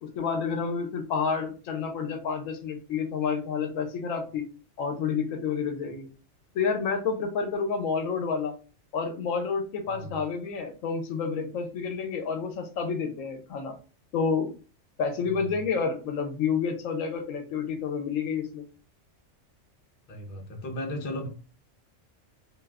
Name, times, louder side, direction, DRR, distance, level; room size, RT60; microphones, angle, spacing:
voice 1, 0.0-4.4 4.8-6.1 6.5-8.5 8.9-13.7 14.1-14.5 15.0-18.6, left 5 dB, 80° left, 5 dB, 1.0 m, -29 dB
voice 2, 20.1-21.3, left 1 dB, 45° left, 2 dB, 0.8 m, -35 dB
2.6 x 2.4 x 3.3 m, 0.35 s
omnidirectional pair, 1.3 m